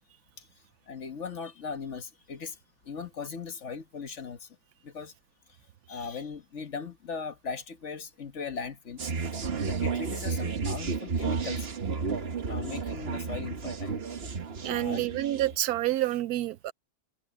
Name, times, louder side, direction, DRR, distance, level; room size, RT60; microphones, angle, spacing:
voice 1, 0.9-2.6 2.8-4.5 4.8-5.1 5.9-9.1 9.6-11.7 12.5-13.9 14.7-15.0, left 5 dB, 50° left, 1.5 m, -38 dB
sound 1, 9.0-15.6, right 5 dB, 45° right, 1.3 m, -32 dB
voice 2, 14.6-16.7, right 14 dB, 80° right, 1.1 m, -28 dB
omnidirectional pair, 1.6 m